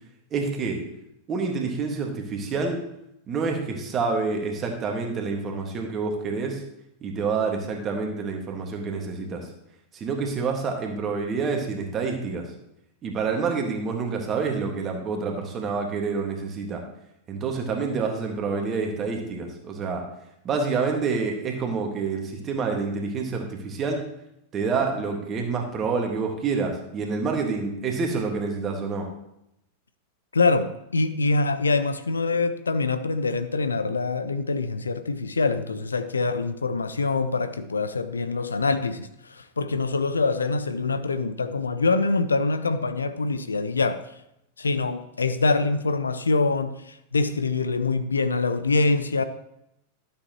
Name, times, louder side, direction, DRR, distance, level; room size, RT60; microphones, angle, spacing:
voice 1, 0.3-0.8 1.3-2.8 3.3-6.6 7.0-9.5 9.9-12.4 13.0-16.8 17.3-20.0 20.4-24.0 24.5-29.1, right 4 dB, 30° right, 1.7 m, -27 dB
voice 2, 30.3-44.0 44.6-49.2, left 3 dB, 75° left, 0.5 m, -24 dB
12.0 x 7.2 x 3.0 m
figure-of-eight pair, 90°, 0 cm